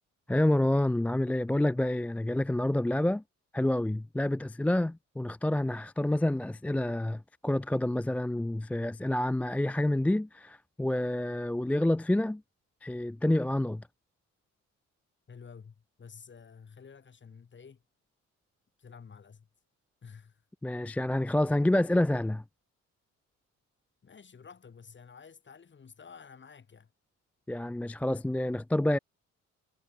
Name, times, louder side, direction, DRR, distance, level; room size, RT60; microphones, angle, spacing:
voice 1, 0.3-3.2 3.5-12.4 12.8-13.8 20.6-22.4 27.5-29.0, left 1 dB, 5° left, 0.3 m, -28 dB
voice 2, 15.3-17.8 18.8-19.5 20.0-20.4 24.0-26.9, left 6 dB, 40° left, 3.2 m, -51 dB
cardioid pair, 90°, 30 cm